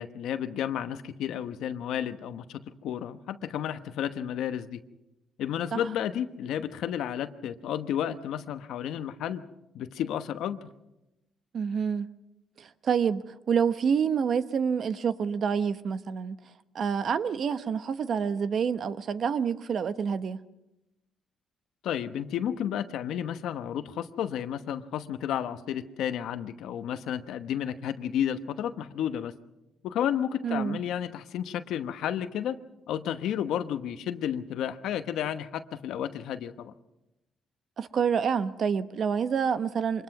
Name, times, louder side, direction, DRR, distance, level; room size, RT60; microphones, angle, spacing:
voice 1, 0.0-4.8 5.4-9.4 9.7-10.7 21.8-29.3 29.8-32.6 32.9-36.7, left 9 dB, 80° left, 1.0 m, -32 dB
voice 2, 11.5-12.1 12.6-16.4 16.7-20.4 30.4-30.8 37.8-40.0, right 7 dB, 55° right, 1.0 m, -27 dB
24.5 x 20.5 x 5.9 m
cardioid pair, 90°, 0 cm